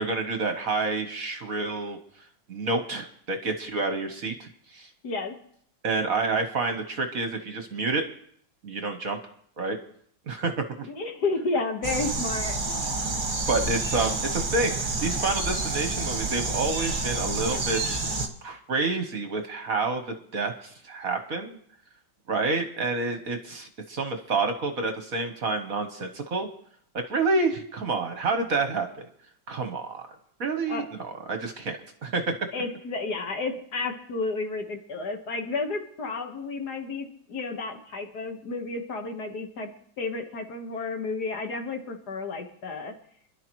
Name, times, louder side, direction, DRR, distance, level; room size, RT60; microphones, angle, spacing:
voice 1, 0.0-2.0 2.5-4.9 5.8-8.0 8.6-9.2 9.6-9.8 10.3-10.5 10.8-10.9 13.5-18.1 18.4-21.6 22.3-26.5 26.9-29.0 29.5-30.0 30.4-32.4, right 3 dB, 50° right, 6 dB, 1.3 m, -28 dB
voice 2, 5.0-5.3 10.8-13.0 30.7-30.9 32.5-39.7 40.0-42.9, left 3 dB, 55° left, 4 dB, 1.9 m, -31 dB
sound 1, 11.8-18.3, right 3 dB, 30° right, 1.3 m, -29 dB
27.0 x 11.5 x 3.1 m, 0.64 s
omnidirectional pair, 2.1 m